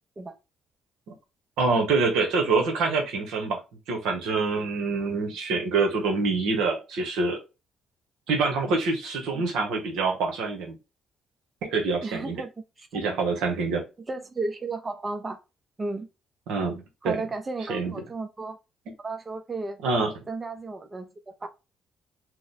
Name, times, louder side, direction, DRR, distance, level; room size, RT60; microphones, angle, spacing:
voice 1, 1.6-3.6 3.9-7.4 8.3-10.8 11.6-12.4 12.9-13.8 16.5-17.2 17.7-17.9 19.8-20.1, right 3 dB, 85° right, 0.9 m, -26 dB
voice 2, 12.0-12.5 12.8-13.1 14.1-15.4 15.8-16.1 17.0-18.6 19.0-19.8 20.3-21.5, right 3 dB, 30° right, 0.5 m, -34 dB
2.9 x 2.0 x 3.9 m
supercardioid pair, 75°, 0 cm